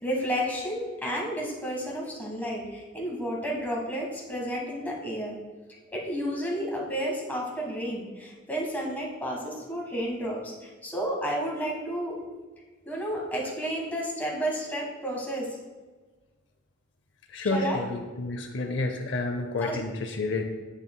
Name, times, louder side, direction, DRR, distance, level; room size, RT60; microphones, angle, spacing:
voice 1, 0.0-5.4 5.9-12.2 12.8-15.5 17.5-17.8 19.6-19.8, equal, 10° left, -3 dB, 1.5 m, -31 dB
voice 2, 17.3-20.4, left 3 dB, 65° left, 5 dB, 0.6 m, -30 dB
8.3 x 6.9 x 2.3 m, 1.4 s
head